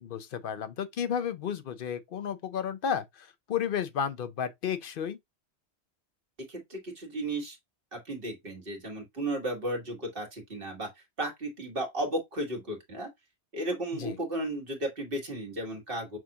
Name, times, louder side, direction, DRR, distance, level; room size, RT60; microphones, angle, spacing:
voice 1, 0.0-5.2 14.0-14.2, left 8 dB, 60° left, 0.8 m, -32 dB
voice 2, 6.5-7.6 7.9-13.1 13.5-16.2, right 1 dB, 55° right, 1.7 m, -34 dB
6.1 x 2.5 x 2.8 m
omnidirectional pair, 1.1 m